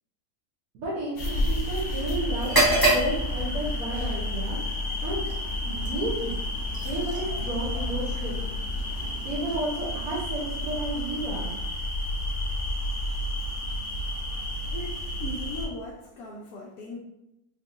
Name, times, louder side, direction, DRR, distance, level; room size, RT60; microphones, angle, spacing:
voice 1, 0.7-4.6 5.0-5.2 5.6-6.4 6.8-8.5 9.2-11.6, right 2 dB, 80° right, -8 dB, 1.3 m, -32 dB
sound 1, 1.2-15.7, left 1 dB, 50° left, 0.7 m, -31 dB
sound 2, 2.4-10.2, right 1 dB, 20° right, 0.7 m, -30 dB
voice 2, 14.6-17.0, left 2 dB, 75° left, -3 dB, 1.1 m, -38 dB
3.9 x 2.7 x 2.5 m, 0.87 s
omnidirectional pair, 1.6 m